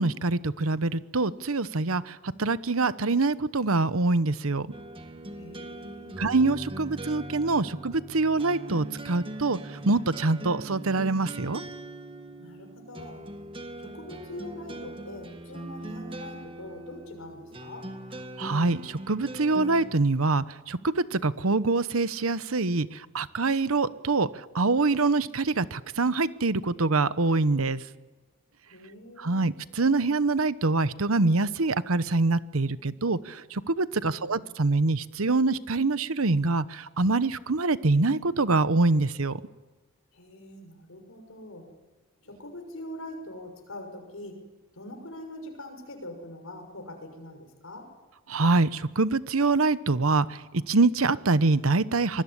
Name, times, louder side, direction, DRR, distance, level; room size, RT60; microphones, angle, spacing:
voice 1, 0.0-4.7 6.2-11.6 18.4-27.8 29.2-39.4 48.3-52.2, right 3 dB, 85° right, 15 dB, 1.0 m, -25 dB
sound 1, 4.7-19.9, right 1 dB, 25° right, 1.6 m, -41 dB
voice 2, 5.3-6.3 12.4-13.2 13.8-17.9 28.7-29.4 34.0-34.4 40.1-41.7 42.2-44.4 44.7-47.9, left 1 dB, 80° left, 5 dB, 6.4 m, -43 dB
26.0 x 20.5 x 10.0 m, 1.2 s
head